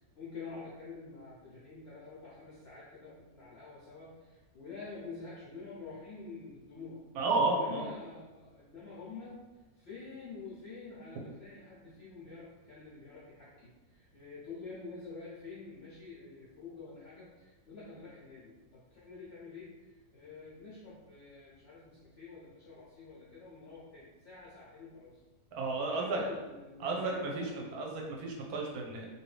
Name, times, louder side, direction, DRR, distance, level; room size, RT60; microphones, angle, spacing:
voice 1, 0.2-7.0 7.5-9.4 9.8-25.2 25.9-27.7, left 4 dB, 70° left, -7 dB, 0.6 m, -48 dB
voice 2, 7.2-7.9 25.5-26.3 26.8-29.1, right 3 dB, 70° right, 0 dB, 1.0 m, -32 dB
2.7 x 2.6 x 3.2 m, 1.2 s
omnidirectional pair, 1.7 m